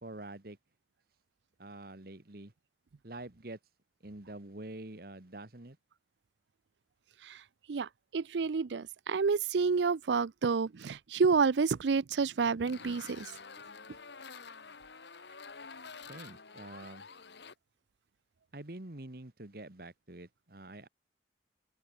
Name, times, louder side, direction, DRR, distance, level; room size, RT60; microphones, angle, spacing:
voice 1, 0.0-0.6 1.6-2.5 3.0-3.6 4.0-5.8 16.1-17.1 18.5-20.9, right 2 dB, 55° right, 1.6 m, -46 dB
voice 2, 7.7-13.3, right 5 dB, 80° right, 0.5 m, -29 dB
sound 1, 12.7-17.5, left 5 dB, 70° left, 1.7 m, -49 dB
open air
head